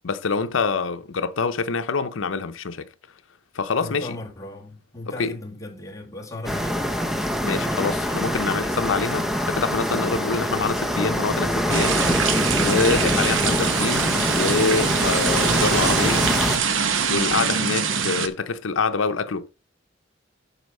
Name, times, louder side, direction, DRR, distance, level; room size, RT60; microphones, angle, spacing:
voice 1, 0.0-2.9 3.5-4.2 5.1-5.3 7.4-12.0 12.6-16.3 17.1-19.5, left 4 dB, 85° left, 0.6 m, -26 dB
voice 2, 3.8-6.9, left 2 dB, 15° left, 1.7 m, -37 dB
sound 1, 6.4-16.6, equal, ahead, 0.7 m, -24 dB
sound 2, 11.7-18.3, right 6 dB, 75° right, 0.9 m, -24 dB
8.0 x 4.5 x 5.4 m
head